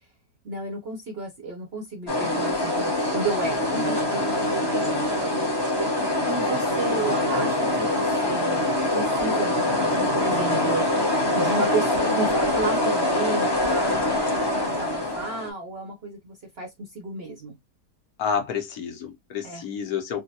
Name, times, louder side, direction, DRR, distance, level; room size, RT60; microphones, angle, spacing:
voice 1, 0.4-4.9 5.2-5.5 6.2-14.2 14.5-17.6 19.4-19.6, right 2 dB, 55° right, 0.7 m, -33 dB
sound 1, 2.1-15.5, left 1 dB, 20° left, 0.6 m, -24 dB
voice 2, 18.2-20.2, left 7 dB, 65° left, 1.2 m, -29 dB
3.6 x 2.1 x 2.7 m
omnidirectional pair, 1.8 m